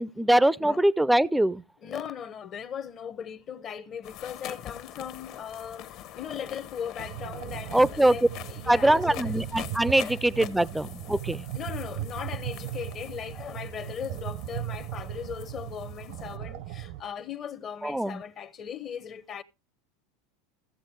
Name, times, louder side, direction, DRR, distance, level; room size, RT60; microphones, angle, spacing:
voice 1, 0.0-1.6 7.7-8.2 8.7-11.5 17.8-18.2, right 1 dB, 5° right, 0.5 m, -23 dB
voice 2, 1.8-9.3 10.0-10.2 10.5-10.7 11.5-19.4, left 8 dB, 35° left, 0.8 m, -38 dB
sound 1, 4.0-16.4, left 12 dB, 55° left, 1.1 m, -45 dB
sound 2, 7.0-17.0, right 13 dB, 70° right, 0.9 m, -37 dB
15.5 x 7.8 x 4.5 m
supercardioid pair, 125°, 0 cm